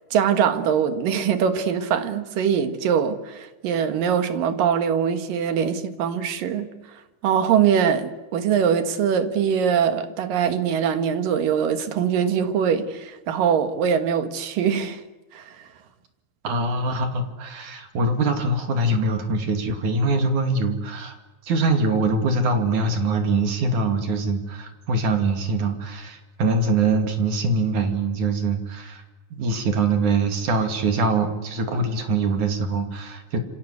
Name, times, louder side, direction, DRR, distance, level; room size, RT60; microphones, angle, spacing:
voice 1, 0.1-6.7 7.2-15.0 15.3-15.7, right 7 dB, 85° right, 3.3 m, -22 dB
voice 2, 16.4-21.2 21.4-29.0 29.3-33.4, right 3 dB, 65° right, 3.9 m, -23 dB
27.5 x 25.5 x 8.2 m
omnidirectional pair, 3.8 m